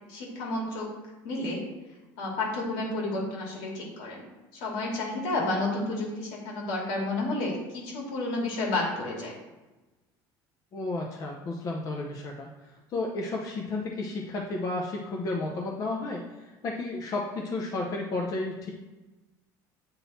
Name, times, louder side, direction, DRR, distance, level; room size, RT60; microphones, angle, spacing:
voice 1, 0.1-0.9 1.2-1.6 2.2-4.3 4.5-9.3, left 2 dB, 80° left, -2 dB, 2.4 m, -31 dB
voice 2, 10.7-12.5 12.9-18.7, left 2 dB, 40° left, 0 dB, 0.8 m, -32 dB
8.5 x 3.9 x 4.2 m, 1.1 s
cardioid pair, 140°, 9 cm